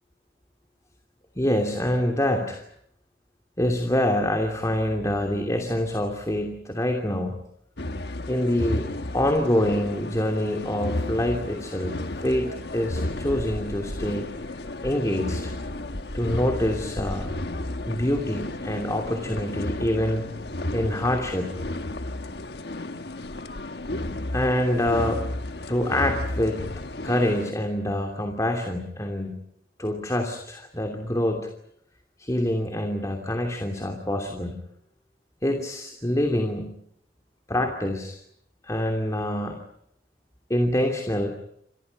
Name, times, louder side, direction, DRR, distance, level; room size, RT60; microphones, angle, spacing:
voice 1, 1.4-2.6 3.6-7.4 8.3-14.3 14.8-15.5 16.1-17.3 17.9-20.3 20.7-21.5 24.3-25.2 25.7-26.7 27.0-29.4 29.8-31.5 32.2-34.5 35.4-36.8 37.5-38.2 38.6-39.6 40.5-41.3, left 1 dB, 20° left, 3 dB, 2.8 m, -26 dB
sound 1, 7.8-27.5, left 1 dB, 60° left, 1.4 m, -33 dB
29.5 x 27.5 x 5.4 m, 0.73 s
head